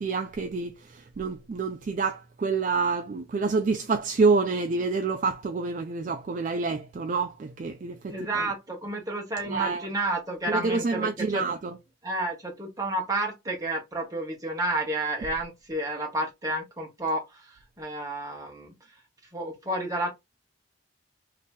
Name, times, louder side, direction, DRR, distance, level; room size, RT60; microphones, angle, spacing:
voice 1, 0.0-8.4 9.5-9.8 10.5-11.8, right 4 dB, 40° right, 0.3 m, -27 dB
voice 2, 8.1-11.4 12.0-17.4 17.8-18.7 19.3-20.1, right 2 dB, 20° right, 1.1 m, -30 dB
2.8 x 2.7 x 3.5 m
head